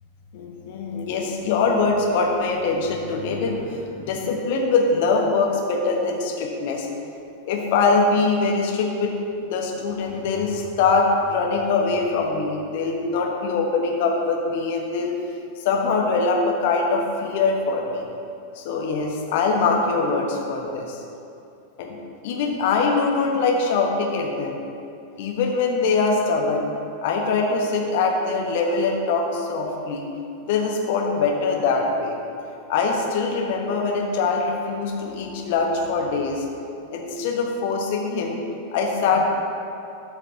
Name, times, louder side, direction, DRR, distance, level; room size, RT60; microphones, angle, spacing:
voice 1, 0.3-6.9 7.5-9.1 9.4-15.2 15.6-18.0 18.5-21.0 21.8-22.0 22.2-24.6 25.2-26.7 27.0-30.1 30.4-32.2 32.7-36.5 36.9-38.4 38.7-39.2, left 4 dB, 50° left, 1 dB, 1.1 m, -23 dB
13.0 x 5.8 x 2.8 m, 2.7 s
figure-of-eight pair, 90°, 0 cm